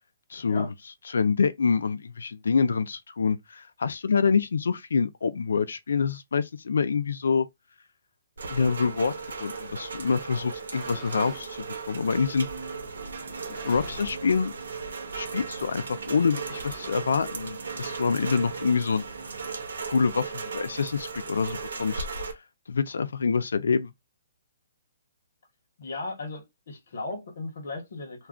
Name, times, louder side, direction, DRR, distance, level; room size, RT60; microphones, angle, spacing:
voice 1, 0.3-0.7 1.1-7.5 8.5-9.1 9.4-12.5 13.6-14.5 15.1-19.0 19.8-22.1 22.7-23.9, left 5 dB, 85° left, 0.3 m, -26 dB
Rain, 8.4-22.3, right 4 dB, 90° right, 0.8 m, -37 dB
sound 1, 10.6-11.5 12.3-12.4 13.3-14.3 14.6-14.9 15.1-15.2 16.1-17.2, right 4 dB, 10° right, 0.5 m, -51 dB
sound 2, 12.1-20.6, right 3 dB, 60° right, 0.6 m, -47 dB
voice 2, 25.8-28.3, left 2 dB, 45° left, 0.8 m, -36 dB
2.3 x 2.3 x 3.6 m
hypercardioid pair, 180°, 0 cm